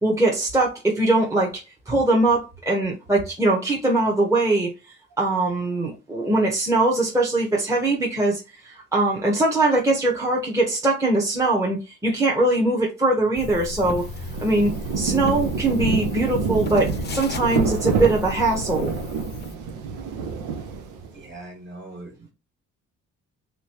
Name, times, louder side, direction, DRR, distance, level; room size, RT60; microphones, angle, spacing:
voice 1, 0.0-1.6 1.9-4.7 5.2-14.0 14.4-18.9, right 2 dB, 10° right, 0.9 m, -21 dB
sound 1, 13.3-19.5, left 3 dB, 35° left, 0.6 m, -34 dB
Rain, 14.0-21.2, right 5 dB, 90° right, 0.7 m, -28 dB
voice 2, 21.1-22.3, right 2 dB, 35° right, 1.7 m, -41 dB
3.4 x 3.0 x 2.9 m
cardioid pair, 90°, 30 cm